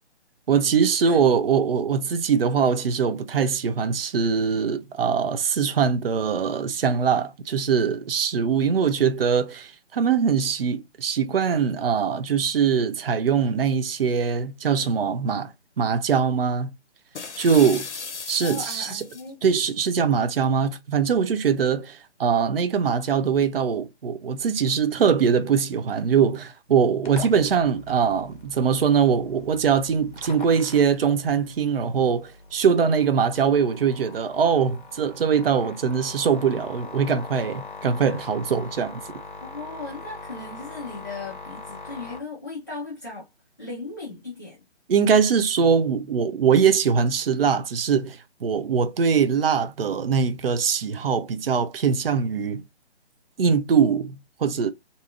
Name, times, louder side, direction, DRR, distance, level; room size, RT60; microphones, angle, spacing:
voice 1, 0.5-16.7 17.4-17.9 18.3-19.0 19.4-39.0 44.9-52.6 53.4-54.7, right 6 dB, 55° right, 0.4 m, -22 dB
sound 1, 17.2-19.3, left 4 dB, 85° left, 0.6 m, -35 dB
voice 2, 18.4-19.4 39.4-43.3 43.6-44.6, left 3 dB, 20° left, 0.4 m, -37 dB
sound 2, 27.1-42.2, left 3 dB, 45° left, 0.7 m, -42 dB
2.6 x 2.3 x 2.6 m
figure-of-eight pair, 145°, 34 cm